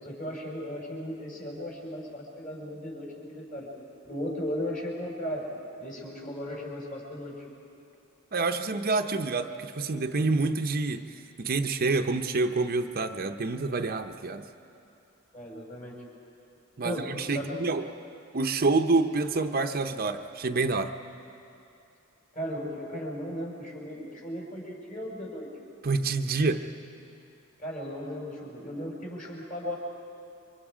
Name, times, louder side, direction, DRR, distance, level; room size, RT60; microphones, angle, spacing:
voice 1, 0.0-3.7 4.0-5.4 5.8-7.4 15.3-16.0 16.8-17.6 22.3-25.5 27.6-29.8, equal, 40° left, -2 dB, 5.5 m, -36 dB
voice 2, 8.3-14.5 16.8-17.9 18.3-20.9 25.8-26.7, right 3 dB, 45° right, 6 dB, 0.7 m, -27 dB
29.0 x 24.5 x 5.0 m, 2.7 s
head